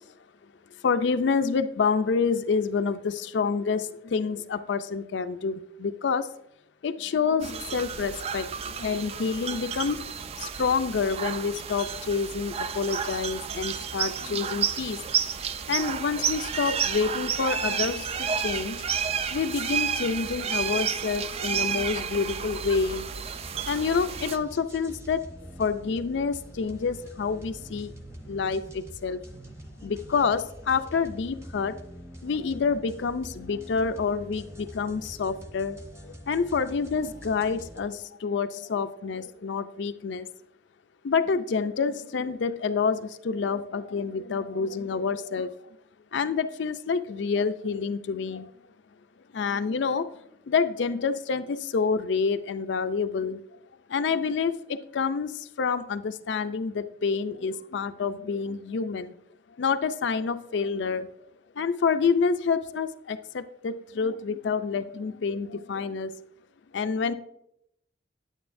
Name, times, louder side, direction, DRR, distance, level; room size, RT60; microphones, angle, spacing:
voice 1, 0.8-6.3 6.8-10.0 10.4-15.0 15.7-18.9 19.3-23.1 23.7-25.3 25.6-27.9 28.3-29.2 29.8-31.8 32.2-35.8 36.0-40.3 41.0-45.5 46.1-48.5 49.3-50.1 50.5-53.4 53.9-59.1 59.6-61.1 61.6-66.2 66.7-67.1, left 5 dB, 65° left, 10 dB, 0.4 m, -28 dB
sound 1, 7.4-24.4, right 7 dB, 30° right, 0.3 m, -31 dB
sound 2, 23.2-37.8, equal, 15° right, 0.8 m, -45 dB
9.0 x 8.9 x 2.6 m, 0.77 s
head